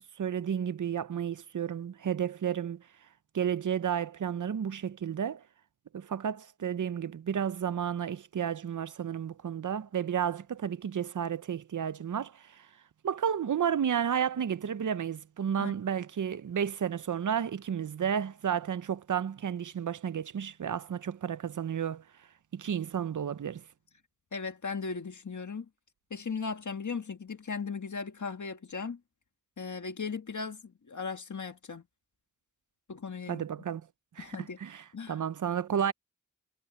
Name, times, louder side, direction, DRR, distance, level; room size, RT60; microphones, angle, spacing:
voice 1, 0.2-2.8 3.3-5.4 5.9-12.7 13.0-22.0 22.5-23.6 33.3-33.8 34.2-35.9, right 8 dB, 80° right, 0.6 m, -32 dB
voice 2, 24.3-25.7 26.1-29.0 29.6-31.8 32.9-33.4 34.2-34.6 34.9-35.2, left 5 dB, 75° left, 1.7 m, -37 dB
wide cardioid pair, 60°, 30 cm